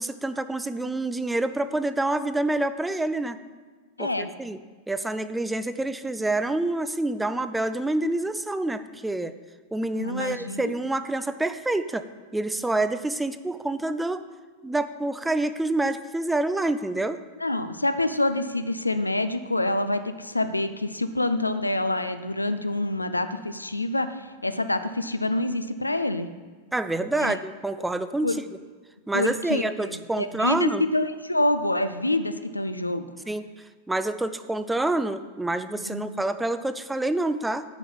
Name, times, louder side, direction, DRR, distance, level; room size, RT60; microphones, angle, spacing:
voice 1, 0.0-3.4 4.0-4.6 4.9-9.3 9.7-12.1 12.3-14.2 14.6-17.2 26.7-28.4 29.1-30.8 33.3-33.4 33.9-37.7, right 2 dB, 5° right, 11 dB, 0.4 m, -27 dB
voice 2, 10.0-10.7 17.4-26.3 27.2-27.4 28.2-28.4 29.1-33.0 35.8-36.2, left 2 dB, 85° left, 10 dB, 0.5 m, -27 dB
9.9 x 5.4 x 7.3 m, 1.4 s
figure-of-eight pair, 90°, 0 cm